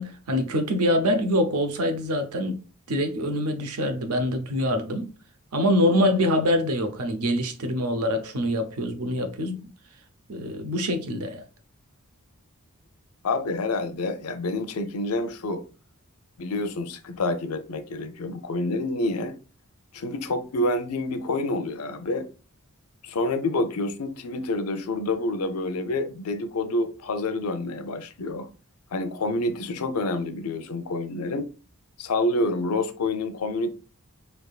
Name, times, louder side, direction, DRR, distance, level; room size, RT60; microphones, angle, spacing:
voice 1, 0.0-2.6 2.9-5.1 5.5-9.7 10.3-11.4, equal, 85° right, 0.7 m, -25 dB
voice 2, 13.2-15.6 16.4-19.3 19.9-22.3 23.0-28.5 28.9-31.5 32.0-33.7, left 2 dB, 90° left, 0.6 m, -28 dB
4.3 x 3.4 x 2.4 m
head